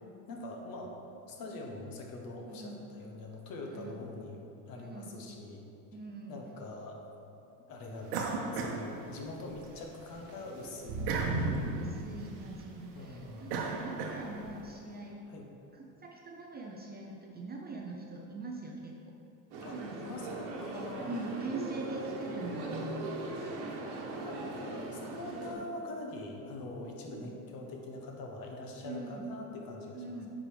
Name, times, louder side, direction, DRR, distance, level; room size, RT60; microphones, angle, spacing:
voice 1, 0.3-0.9 1.2-5.6 6.3-7.0 7.7-11.1 12.9-13.6 15.3-15.5 19.6-21.1 24.1-30.0, left 2 dB, 45° left, 1 dB, 1.2 m, -43 dB
voice 2, 2.5-2.8 3.7-4.0 4.8-5.1 5.9-6.4 11.7-15.2 15.7-19.2 19.7-20.1 20.7-23.1 25.5-25.6 27.0-27.3 28.8-29.3 29.9-30.3, right 2 dB, 20° right, 0 dB, 0.5 m, -42 dB
sound 1, 8.1-9.6 10.0-14.6, right 3 dB, 75° right, 1.0 m, -35 dB
sound 2, 19.5-25.5, right 2 dB, 55° right, 1.2 m, -40 dB
9.4 x 3.8 x 3.4 m, 2.7 s
hypercardioid pair, 90°, 47 cm